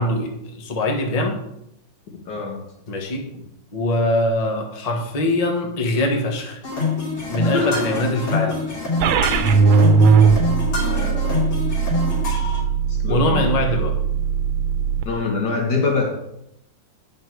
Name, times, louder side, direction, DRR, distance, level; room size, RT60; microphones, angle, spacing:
voice 1, 0.0-1.4 2.9-3.2 3.7-6.6 7.3-8.6 13.1-14.0, left 1 dB, 25° left, 1 dB, 1.0 m, -22 dB
voice 2, 2.3-2.6 7.5-7.9 10.8-11.5 12.9-13.5 15.1-16.1, left 4 dB, 60° left, 1 dB, 2.0 m, -24 dB
sound 1, 6.6-12.6, left 3 dB, 90° left, 3.6 m, -25 dB
sound 2, 9.0-15.0, right 5 dB, 90° right, 1.5 m, -19 dB
9.0 x 5.7 x 4.7 m, 0.80 s
omnidirectional pair, 2.1 m